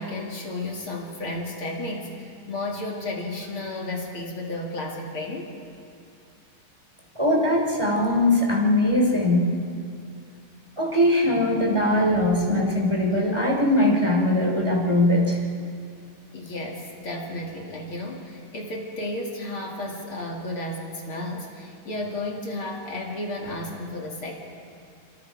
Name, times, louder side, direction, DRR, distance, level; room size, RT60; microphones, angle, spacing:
voice 1, 0.0-5.5 16.3-24.3, left 1 dB, 40° left, 0 dB, 2.0 m, -33 dB
voice 2, 7.1-9.5 10.8-15.4, left 1 dB, 10° right, 0 dB, 1.8 m, -21 dB
28.0 x 25.5 x 4.7 m, 2.4 s
omnidirectional pair, 5.4 m